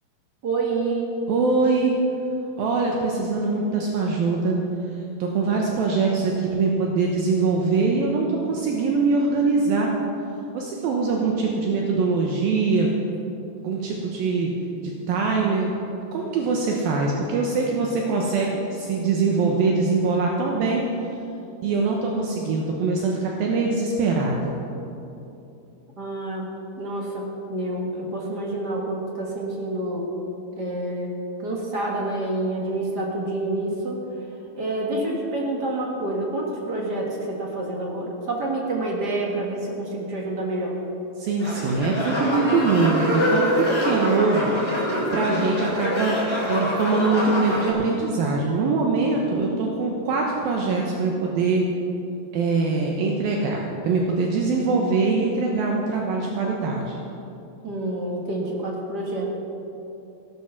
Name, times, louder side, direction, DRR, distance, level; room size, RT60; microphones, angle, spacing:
voice 1, 0.4-1.1 26.0-26.5 26.8-30.1 30.6-34.0 34.5-40.8 57.6-59.3, right 2 dB, 45° right, -2 dB, 1.3 m, -28 dB
voice 2, 1.3-2.0 2.6-4.6 5.2-9.9 10.5-12.9 13.6-14.5 14.8-15.7 16.1-20.8 21.6-24.5 41.2-46.2 46.5-51.6 52.3-57.0, right 4 dB, 75° right, 0 dB, 2.7 m, -23 dB
sound 1, 41.4-47.7, equal, 5° left, 2.6 m, -25 dB
15.5 x 12.0 x 5.9 m, 2.9 s
omnidirectional pair, 4.6 m